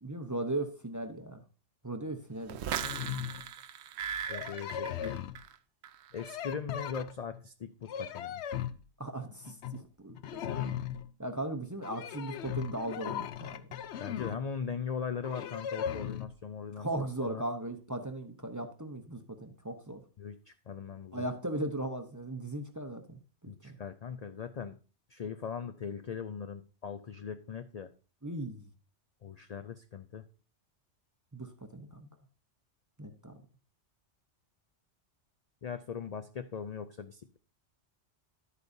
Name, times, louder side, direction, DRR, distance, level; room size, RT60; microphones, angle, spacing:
voice 1, 0.0-1.4 1.8-2.6 9.0-10.7 11.2-13.8 16.7-20.0 21.1-23.8 28.2-28.7 31.3-32.1 33.0-33.4, right 1 dB, 20° right, 6 dB, 0.7 m, -38 dB
sound 1, 2.5-5.5 5.8-6.3, right 9 dB, 75° right, 0.8 m, -38 dB
sound 2, 2.8-3.5 4.3-5.4 6.2-7.4 7.8-8.8 9.4-9.8 10.1-11.1 11.8-14.4 15.2-16.3, left 9 dB, 75° left, 0.9 m, -38 dB
voice 2, 4.3-5.3 6.1-8.4 14.0-16.9 17.2-17.4 20.2-21.2 23.5-24.7 25.1-27.9 29.2-30.2 35.6-37.4, left 6 dB, 50° left, 9 dB, 0.5 m, -40 dB
11.0 x 8.3 x 2.7 m, 0.35 s
omnidirectional pair, 1.2 m